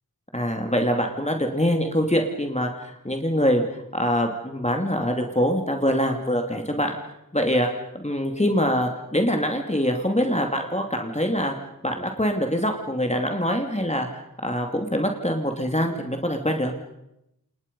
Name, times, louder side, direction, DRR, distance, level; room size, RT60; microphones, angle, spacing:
voice 1, 0.3-7.0 7.3-7.7 7.9-11.5 11.8-14.1 14.4-16.7, equal, 20° left, 3 dB, 2.6 m, -24 dB
29.0 x 28.0 x 5.4 m, 0.85 s
wide cardioid pair, 50°, 35 cm